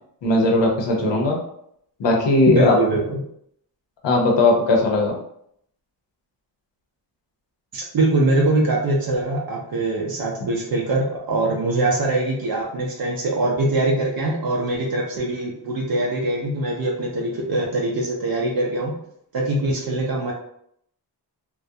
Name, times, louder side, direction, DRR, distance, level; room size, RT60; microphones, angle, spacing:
voice 1, 0.2-1.4 2.0-2.8 4.0-5.2, left 2 dB, 85° left, 0 dB, 0.8 m, -18 dB
voice 2, 2.5-3.2 7.7-19.0 19.3-20.3, right 2 dB, 60° right, -2 dB, 0.6 m, -22 dB
2.3 x 2.1 x 2.6 m, 0.71 s
wide cardioid pair, 135°, 43 cm